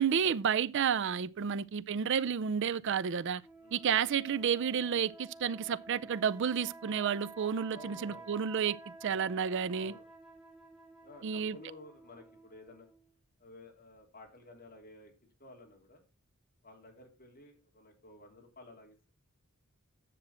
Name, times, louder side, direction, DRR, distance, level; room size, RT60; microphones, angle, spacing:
voice 1, 0.0-3.4 3.7-9.9 11.2-11.6, right 7 dB, 60° right, 0.4 m, -31 dB
sound 1, 3.4-13.1, right 2 dB, 5° right, 1.8 m, -52 dB
voice 2, 3.6-4.0 7.7-8.3 9.8-10.1 11.0-12.9 13.4-15.1 15.4-16.0 16.6-19.1, left 2 dB, 45° left, 3.0 m, -54 dB
10.0 x 7.6 x 4.2 m
head